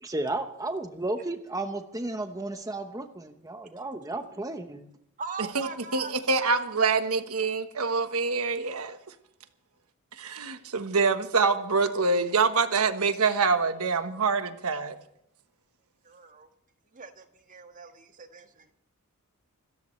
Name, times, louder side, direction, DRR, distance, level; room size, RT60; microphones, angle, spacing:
voice 1, 0.0-4.9, right 2 dB, 15° right, 1.0 m, -33 dB
voice 2, 5.2-6.5 16.0-16.5 16.9-18.7, right 4 dB, 35° right, 1.6 m, -41 dB
voice 3, 5.9-9.0 10.1-15.0, right 4 dB, 75° right, 1.3 m, -25 dB
27.0 x 14.0 x 3.2 m
head